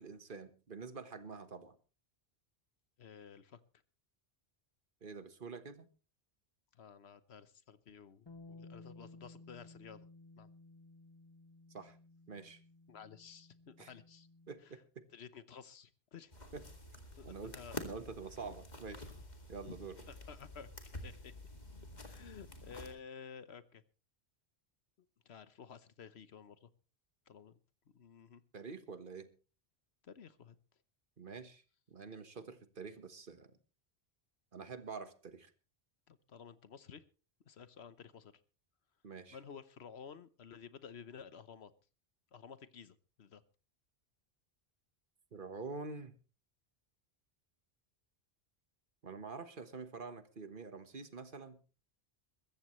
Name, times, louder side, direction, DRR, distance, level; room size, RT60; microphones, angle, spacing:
voice 1, 0.0-1.7 5.0-5.9 11.7-11.9 12.3-12.6 13.8-13.9 14.5-15.0 16.5-16.6 17.2-17.5 17.8-19.0 19.5-19.9 28.5-29.3 31.2-31.6 31.9-33.5 34.5-35.5 39.0-39.4 45.3-46.1 49.0-51.6, right 4 dB, 55° right, 11 dB, 1.5 m, -47 dB
voice 2, 3.0-3.6 6.7-10.1 10.4-10.5 12.9-14.3 14.6-14.8 15.1-16.3 17.2-17.8 19.7-19.8 20.1-21.3 22.0-23.8 25.2-26.7 27.3-27.6 27.9-28.4 30.0-30.6 32.4-32.5 36.1-37.0 37.5-38.3 39.3-41.7 42.3-43.4, left 7 dB, 80° left, 14 dB, 1.2 m, -53 dB
Bass guitar, 8.3-14.5, left 2 dB, 25° left, 0.8 m, -57 dB
sound 1, 16.3-22.9, left 1 dB, 40° left, 2.4 m, -49 dB
22.0 x 14.5 x 3.2 m, 0.35 s
omnidirectional pair, 1.1 m